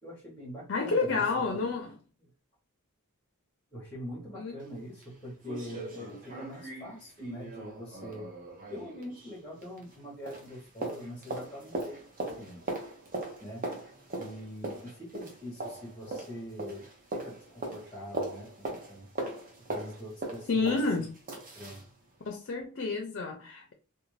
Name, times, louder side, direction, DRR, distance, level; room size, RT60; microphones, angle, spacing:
voice 1, 0.0-1.3 1.5-1.6 3.7-8.3 8.7-12.6 13.4-13.7 14.1-19.1 19.7-20.8 21.5-21.8, equal, 10° left, 1.0 m, -43 dB
voice 2, 0.7-1.9 4.3-4.6 20.5-21.1 22.3-23.7, left 4 dB, 50° left, 0.4 m, -29 dB
sound 1, 4.6-4.7 5.0-5.1 5.4-10.0 10.3-21.9 22.2-22.3, right 2 dB, 40° right, 0.7 m, -40 dB
2.5 x 2.2 x 3.1 m
head